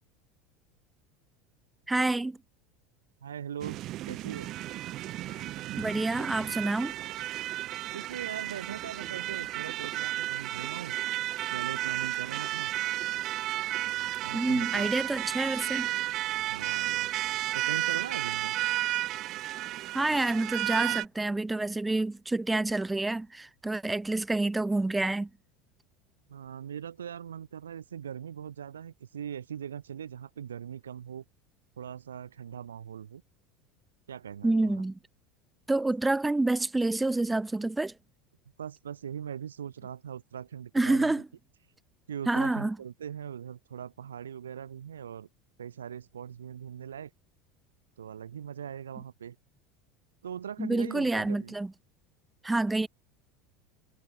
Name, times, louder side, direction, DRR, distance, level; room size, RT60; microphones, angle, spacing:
voice 1, 1.9-2.4 5.8-6.9 14.3-15.9 19.9-25.3 34.4-35.0 35.7-37.9 40.7-41.3 42.3-42.8 50.6-51.7 52.4-52.9, right 2 dB, 10° right, 1.0 m, -28 dB
voice 2, 3.2-4.5 7.9-10.9 11.5-12.7 14.2-14.9 16.5-17.1 17.5-18.6 18.9-19.0 26.3-31.2 31.8-33.2 34.1-34.8 38.6-41.2 42.1-45.3 45.6-47.1 48.0-49.4 50.2-51.5, right 8 dB, 85° right, 1.7 m, -40 dB
sound 1, 3.6-21.1, right 15 dB, 50° right, 3.4 m, -33 dB
hypercardioid pair, 80°, 0 cm